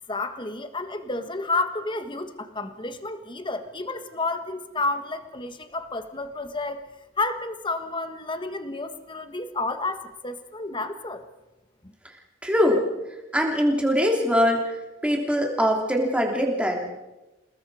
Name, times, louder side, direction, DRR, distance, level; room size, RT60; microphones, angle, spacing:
voice 1, 0.1-6.8 7.2-11.3 11.8-11.9, left 2 dB, 25° left, 9 dB, 1.5 m, -30 dB
voice 2, 12.4-12.9 13.3-14.6 15.0-16.8, equal, 5° right, 1 dB, 3.2 m, -22 dB
29.0 x 19.5 x 4.9 m, 1.1 s
head